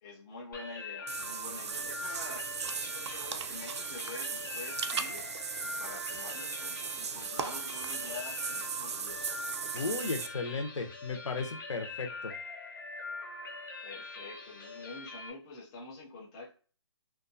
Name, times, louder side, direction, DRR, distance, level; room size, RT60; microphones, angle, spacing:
voice 1, 0.0-2.4 2.7-5.3 5.6-9.3 9.6-10.1 13.8-16.5, left 3 dB, 10° left, -6 dB, 0.3 m, -47 dB
sound 1, 0.5-15.3, left 3 dB, 45° left, 0.6 m, -43 dB
Water / Bathtub (filling or washing), 1.1-10.3, right 6 dB, 65° right, 0.4 m, -37 dB
voice 2, 9.7-12.3, left 4 dB, 85° left, 5 dB, 0.8 m, -35 dB
2.6 x 2.2 x 2.5 m, 0.40 s
hypercardioid pair, 165°, 15 cm